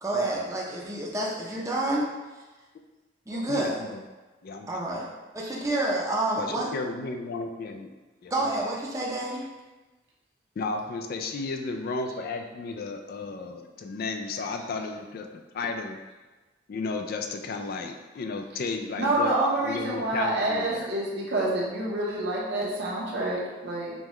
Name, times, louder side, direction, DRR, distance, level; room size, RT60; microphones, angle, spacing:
voice 1, 0.0-2.1 3.3-3.8 4.7-5.0 5.3-6.7 8.3-9.4, right 1 dB, 15° right, -3 dB, 0.6 m, -28 dB
voice 2, 3.3-4.0 4.4-4.9 6.4-7.9 8.2-8.7 10.6-16.0 16.7-19.3 19.6-20.9, left 3 dB, 55° left, 5 dB, 0.3 m, -34 dB
voice 3, 19.0-23.9, right 1 dB, 65° right, -4 dB, 0.9 m, -27 dB
5.3 x 2.3 x 3.1 m, 1.2 s
head